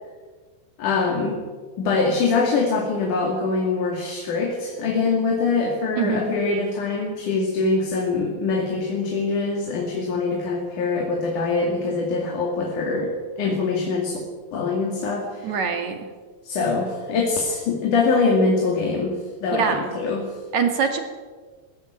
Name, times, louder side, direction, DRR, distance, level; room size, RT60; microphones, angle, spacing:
voice 1, 0.8-1.4 1.8-14.2 14.5-15.5 16.4-20.3, left 4 dB, 70° left, 1 dB, 3.9 m, -23 dB
voice 2, 6.0-6.3 15.4-16.0 19.5-19.9 20.5-21.0, right 6 dB, 60° right, 6 dB, 3.2 m, -23 dB
19.5 x 16.5 x 9.0 m, 1.5 s
omnidirectional pair, 3.8 m